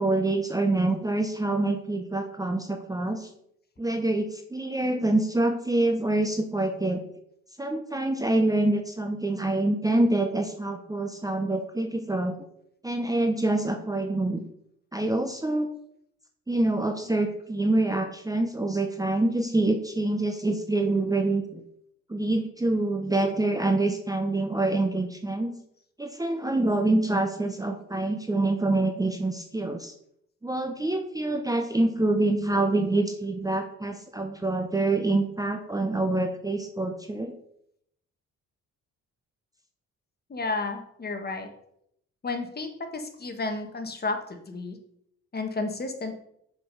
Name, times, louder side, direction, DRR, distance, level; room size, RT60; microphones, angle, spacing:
voice 1, 0.0-3.3 3.8-7.0 7.6-12.4 12.8-14.4 14.9-15.7 16.5-21.6 22.1-25.5 26.0-29.9 30.4-37.3, right 2 dB, 10° right, 5 dB, 0.7 m, -26 dB
voice 2, 40.3-41.5 42.2-44.8 45.3-46.1, left 3 dB, 30° left, 6 dB, 1.4 m, -32 dB
6.7 x 5.1 x 5.4 m, 0.73 s
cardioid pair, 90°, 30 cm